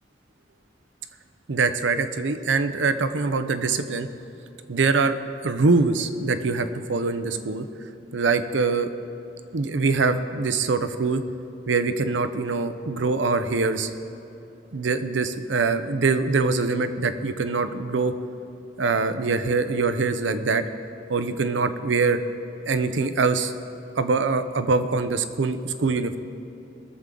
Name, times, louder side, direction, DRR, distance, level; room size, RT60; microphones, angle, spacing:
voice 1, 1.5-4.1 4.7-5.2 5.4-7.6 8.1-8.9 9.5-11.2 11.7-13.9 14.7-18.1 18.8-20.6 21.1-22.2 22.7-23.5 23.9-26.2, right 4 dB, 90° right, 10 dB, 0.7 m, -23 dB
19.5 x 7.4 x 3.8 m, 3.0 s
head